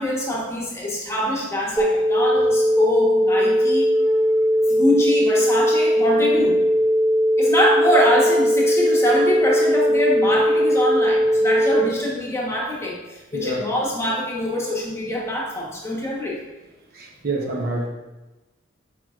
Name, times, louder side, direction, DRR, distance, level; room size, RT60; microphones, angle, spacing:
voice 1, 0.0-4.2 4.7-6.6 7.4-13.0 13.3-16.4, left 1 dB, 15° left, -3 dB, 1.1 m, -24 dB
sound 1, 1.8-11.8, equal, 20° right, 1.4 m, -19 dB
voice 2, 16.9-17.9, right 2 dB, 50° right, -1 dB, 1.0 m, -27 dB
8.5 x 4.7 x 2.4 m, 1.1 s
head